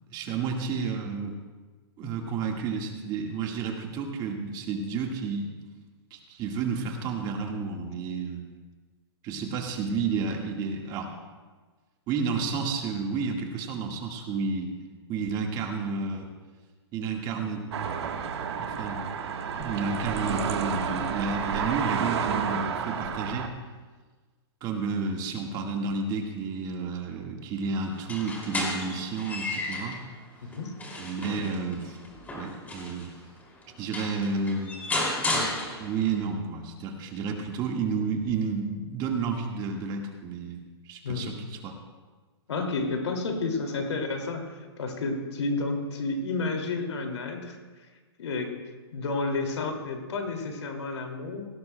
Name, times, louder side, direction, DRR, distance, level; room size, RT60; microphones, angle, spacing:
voice 1, 0.0-1.4 2.0-5.5 6.1-8.4 9.2-11.1 12.1-14.7 15.1-16.3 16.9-17.6 18.5-19.0 19.5-23.5 24.6-30.0 31.0-32.0 32.3-33.2 33.8-34.9 35.8-40.6 40.8-41.7, right 4 dB, 30° right, 2 dB, 1.6 m, -31 dB
sound 1, 17.7-23.5, right 6 dB, 75° right, 1.3 m, -30 dB
sound 2, 27.9-30.0 30.5-33.1 33.6-33.7 33.9-36.1, left 2 dB, 10° left, 2.6 m, -33 dB
voice 2, 30.4-30.7 41.0-41.4 42.5-47.6 48.2-48.5 48.9-51.4, left 3 dB, 85° left, 3 dB, 2.4 m, -31 dB
18.0 x 16.5 x 2.2 m, 1.4 s
hypercardioid pair, 145°, 14 cm